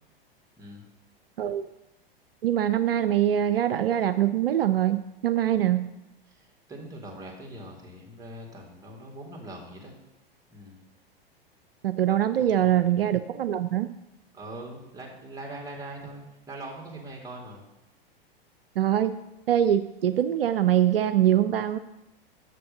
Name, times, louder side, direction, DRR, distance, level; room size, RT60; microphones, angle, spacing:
voice 1, 1.4-1.7 2.4-5.9 11.8-13.9 18.8-19.2 19.5-21.8, right 11 dB, 70° right, 12 dB, 0.5 m, -23 dB
voice 2, 6.3-9.9 10.5-10.8 12.4-12.9 14.3-17.6, right 1 dB, 10° right, -1 dB, 2.3 m, -42 dB
6.8 x 6.6 x 6.5 m, 0.93 s
figure-of-eight pair, 95°, 30 cm